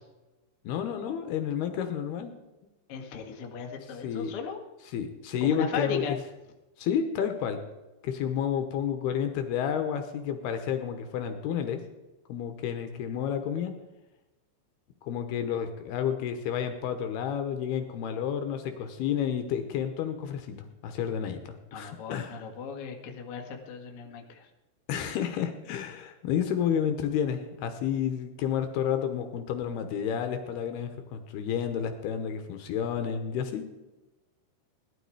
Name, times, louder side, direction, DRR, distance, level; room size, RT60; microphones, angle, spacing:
voice 1, 0.6-2.3 4.0-4.3 4.8-6.2 6.8-7.6 8.0-11.8 12.3-13.7 15.0-20.6 20.8-22.4 24.9-33.6, left 8 dB, 75° left, 7 dB, 2.9 m, -30 dB
voice 2, 2.9-4.6 5.4-6.2 21.7-24.5, left 5 dB, 45° left, 1 dB, 1.9 m, -36 dB
18.0 x 12.0 x 4.9 m, 1.1 s
omnidirectional pair, 5.0 m